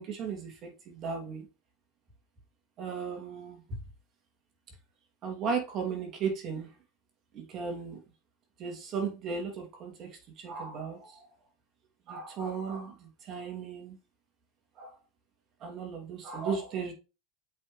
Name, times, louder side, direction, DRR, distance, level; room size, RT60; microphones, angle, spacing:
voice 1, 0.0-1.5 2.8-3.8 5.2-6.7 7.3-8.0 8.6-11.3 12.1-14.0 14.7-15.0 15.6-16.9, right 5 dB, 40° right, 3.0 m, -36 dB
8.1 x 5.4 x 3.4 m
supercardioid pair, 125°, 0 cm